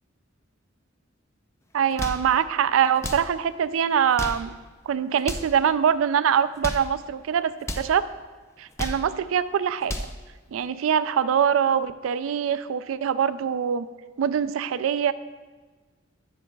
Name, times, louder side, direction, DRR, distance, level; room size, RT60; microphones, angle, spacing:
voice 1, 1.7-4.6 4.9-8.0 8.6-9.9 10.5-13.9 14.2-15.1, right 8 dB, 85° right, 14 dB, 0.3 m, -23 dB
sound 1, 1.8-2.3 2.9-3.3 4.0-4.5 5.2-5.6 6.4-6.9 7.6-7.9 8.6-9.1 9.7-10.2, left 1 dB, 15° left, 0.5 m, -33 dB
13.0 x 6.5 x 2.3 m, 1.3 s
head